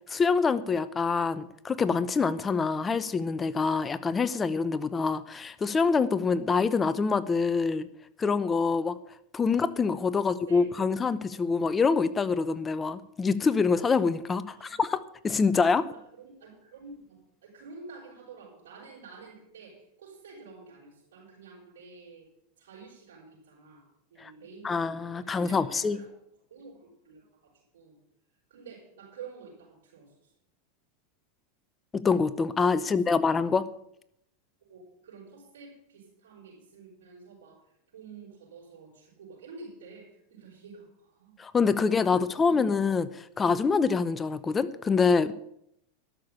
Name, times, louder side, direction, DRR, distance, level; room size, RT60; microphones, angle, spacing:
voice 1, 0.1-7.9 8.2-9.0 9.3-15.9 24.2-24.3 24.6-26.0 31.9-33.7 41.4-45.3, left 5 dB, 20° left, 15 dB, 0.7 m, -25 dB
voice 2, 10.2-10.7 14.5-14.7 15.7-22.3 22.6-26.1 26.5-28.0 28.5-30.3 32.8-33.0 34.6-37.6 37.9-41.4 41.9-42.5, right 4 dB, 85° right, -7 dB, 5.5 m, -49 dB
12.5 x 6.8 x 8.7 m, 0.76 s
hypercardioid pair, 115°, 0 cm